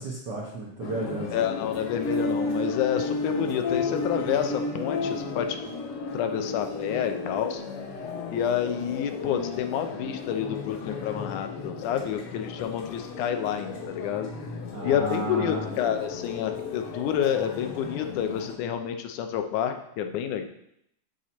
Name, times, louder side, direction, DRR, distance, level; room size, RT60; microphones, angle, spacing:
voice 1, 0.0-1.3 14.7-15.7, right 2 dB, 65° right, -3 dB, 1.0 m, -33 dB
sound 1, 0.8-18.6, left 3 dB, 60° left, 1.7 m, -34 dB
voice 2, 1.3-5.6 6.1-7.6 8.3-14.3 14.8-20.4, left 9 dB, 85° left, 6 dB, 2.2 m, -29 dB
7.7 x 6.9 x 4.3 m, 0.76 s
omnidirectional pair, 3.4 m